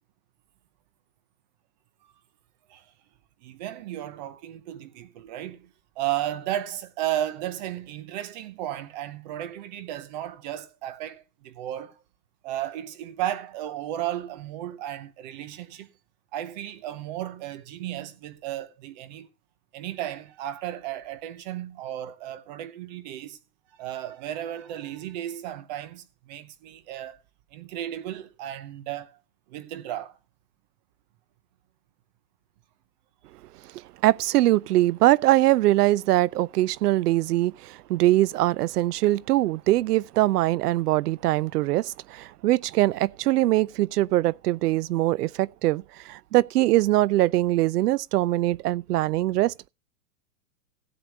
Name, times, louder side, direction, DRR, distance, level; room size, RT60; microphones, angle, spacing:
voice 1, 3.4-12.0 12.4-15.9 16.3-19.3 19.7-23.4 23.8-27.2 27.5-29.2 29.5-30.2, right 12 dB, 30° right, 0.7 m, -34 dB
voice 2, 34.0-49.5, right 16 dB, 75° right, 0.5 m, -22 dB
16.0 x 8.0 x 3.3 m
supercardioid pair, 165°, 48 cm